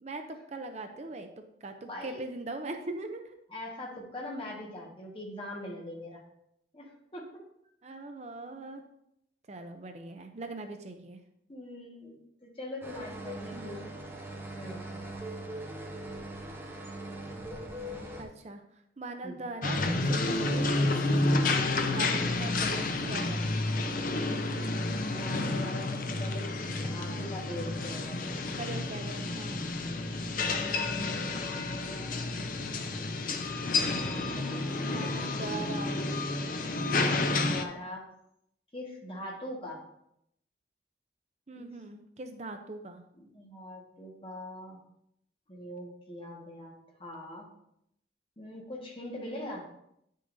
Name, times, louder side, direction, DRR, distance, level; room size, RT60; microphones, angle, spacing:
voice 1, 0.0-3.4 7.8-8.8 9.5-11.2 13.5-13.9 17.9-18.6 19.0-21.0 21.6-23.5 23.7-24.0 28.6-29.7 34.2-36.1 41.5-43.0 49.0-49.6, right 2 dB, 40° right, 6 dB, 0.5 m, -41 dB
voice 2, 1.9-2.2 3.5-6.3 6.7-7.3 11.5-13.9 14.6-14.9 19.2-19.4 25.0-28.3 30.3-32.5 33.7-34.7 34.9-35.7 37.0-38.0 38.7-39.8 41.6-41.8 43.1-44.8 45.5-46.7 47.0-47.5 48.4-49.6, left 1 dB, 30° left, -2 dB, 1.5 m, -42 dB
sound 1, 12.8-18.2, right 1 dB, 15° right, 0.9 m, -41 dB
sound 2, 19.6-37.6, left 2 dB, 50° left, 0.6 m, -30 dB
9.4 x 6.4 x 2.7 m, 0.77 s
head